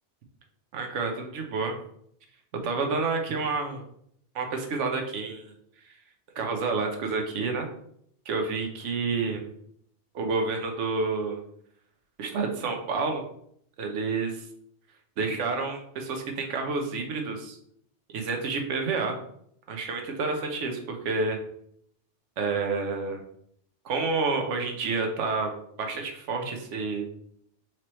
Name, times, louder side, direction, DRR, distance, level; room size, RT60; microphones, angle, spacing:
voice 1, 0.7-1.8 2.6-3.8 4.3-5.5 6.4-7.7 8.3-9.4 10.1-11.4 12.2-13.2 13.8-14.4 15.2-17.6 18.1-19.2 19.7-21.4 22.4-23.2 23.8-25.5 25.8-27.0, right 4 dB, 85° right, 3 dB, 1.1 m, -29 dB
4.6 x 3.0 x 3.0 m, 0.69 s
omnidirectional pair, 1.2 m